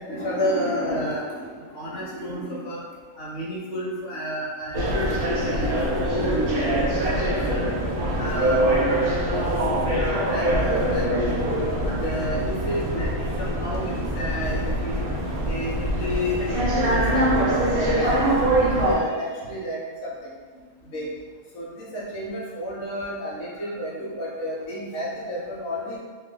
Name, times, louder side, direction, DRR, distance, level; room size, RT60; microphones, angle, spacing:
voice 1, 0.0-2.8 3.1-7.8 8.2-9.5 9.9-11.4 11.8-15.0 15.3-20.3 20.9-21.1 21.5-26.0, equal, 60° left, -5 dB, 1.1 m, -31 dB
sound 1, 4.7-19.0, right 1 dB, 55° right, 0.7 m, -23 dB
3.2 x 2.5 x 3.7 m, 1.5 s
omnidirectional pair, 1.5 m